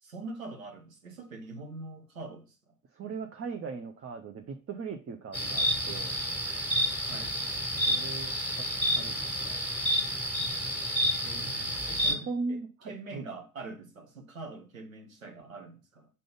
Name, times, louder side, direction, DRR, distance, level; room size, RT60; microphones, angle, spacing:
voice 1, 0.0-2.7 6.9-7.4 11.2-12.6 12.8-16.1, right 3 dB, 85° right, 1.1 m, -44 dB
voice 2, 2.9-6.2 7.9-8.6 8.9-9.1 9.4-9.6 11.3-11.4 12.1-13.2, right 4 dB, 35° right, 0.8 m, -38 dB
sound 1, 5.3-12.1, equal, 5° right, 1.7 m, -30 dB
5.6 x 3.9 x 5.0 m
figure-of-eight pair, 45°, 40 cm